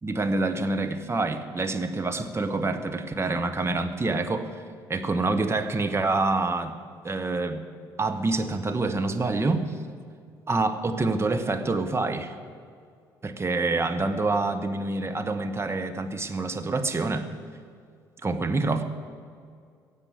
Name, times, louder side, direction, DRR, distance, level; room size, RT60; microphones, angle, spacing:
voice 1, 0.0-4.5 4.9-6.7 7.0-7.6 8.0-9.6 10.5-12.3 13.2-17.3 18.2-18.8, right 3 dB, 25° right, 7 dB, 1.3 m, -26 dB
16.5 x 7.6 x 9.5 m, 2.2 s
figure-of-eight pair, 50°, 11 cm